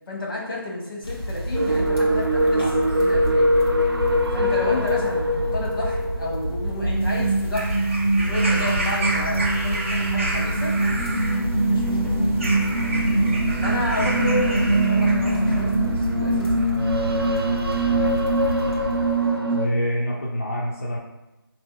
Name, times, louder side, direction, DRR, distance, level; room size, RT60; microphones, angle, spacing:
voice 1, 0.1-2.6 3.0-3.5 4.3-7.7 8.1-10.7 11.6-12.2 13.6-16.8 19.7-19.8, left 2 dB, 65° left, -3 dB, 1.1 m, -31 dB
sound 1, 1.0-19.4, equal, 90° left, 0.9 m, -30 dB
sound 2, 1.5-19.7, right 1 dB, 80° right, 0.5 m, -23 dB
sound 3, 7.0-15.7 16.6-16.7, right 2 dB, 35° right, 0.4 m, -31 dB
voice 2, 17.9-18.2 19.5-21.0, equal, 35° left, -5 dB, 0.4 m, -28 dB
3.5 x 2.7 x 2.3 m, 0.96 s
figure-of-eight pair, 165°, 12 cm